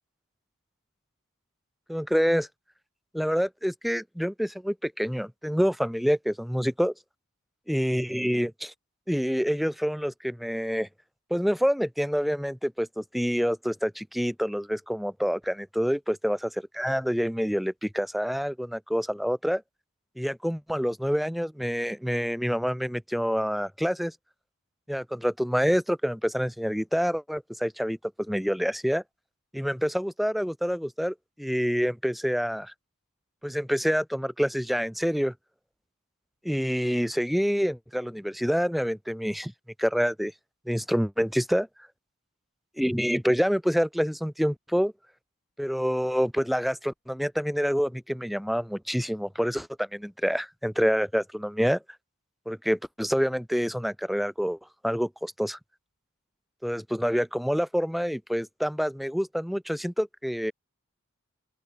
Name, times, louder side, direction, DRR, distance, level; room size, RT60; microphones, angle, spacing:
voice 1, 1.9-2.5 3.1-6.9 7.7-8.7 9.1-10.9 11.3-19.6 20.2-24.1 24.9-29.0 29.5-32.7 33.4-35.3 36.4-39.5 39.8-40.3 40.7-41.7 42.8-44.9 45.6-51.8 52.5-54.6 54.8-55.6 56.6-60.5, equal, ahead, 0.8 m, -27 dB
open air
head